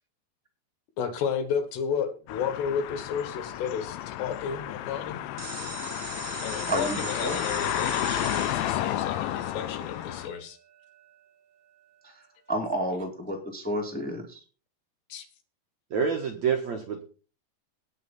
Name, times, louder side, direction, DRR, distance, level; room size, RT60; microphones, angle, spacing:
voice 1, 1.0-5.2 6.4-10.6 15.1-15.3, left 7 dB, 70° left, 9 dB, 3.3 m, -32 dB
sound 1, 2.3-10.3, left 13 dB, 85° left, 3.2 m, -32 dB
sound 2, 5.4-11.0, right 6 dB, 50° right, 3.4 m, -41 dB
voice 2, 6.7-7.4 12.0-12.2 12.5-14.4, right 1 dB, 15° left, 0 dB, 0.3 m, -31 dB
voice 3, 15.9-17.0, right 6 dB, 70° right, 3 dB, 1.7 m, -27 dB
19.0 x 6.5 x 4.2 m, 0.37 s
omnidirectional pair, 5.3 m